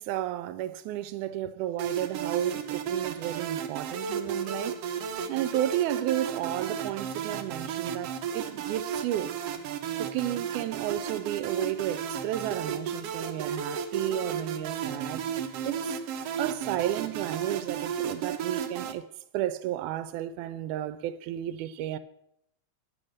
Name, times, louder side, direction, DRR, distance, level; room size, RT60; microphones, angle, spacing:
voice 1, 0.0-4.8 5.3-9.3 10.0-15.3 15.7-16.0 16.4-19.1 19.3-22.0, right 13 dB, 90° right, 2.0 m, -32 dB
sound 1, 1.8-18.9, right 7 dB, 65° right, 1.7 m, -33 dB
10.0 x 7.7 x 6.5 m
omnidirectional pair, 3.4 m